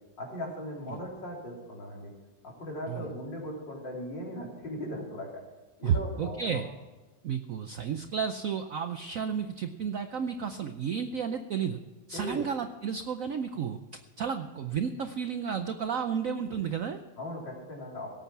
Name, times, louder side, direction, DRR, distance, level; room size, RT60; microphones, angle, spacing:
voice 1, 0.2-2.1 2.4-5.4 5.8-6.6 12.1-12.5 17.2-18.2, equal, 65° left, -3 dB, 4.1 m, -38 dB
voice 2, 5.8-6.7 7.2-11.8 12.1-17.0, right 7 dB, 65° right, 8 dB, 0.8 m, -32 dB
17.5 x 8.6 x 5.9 m, 1.2 s
omnidirectional pair, 2.1 m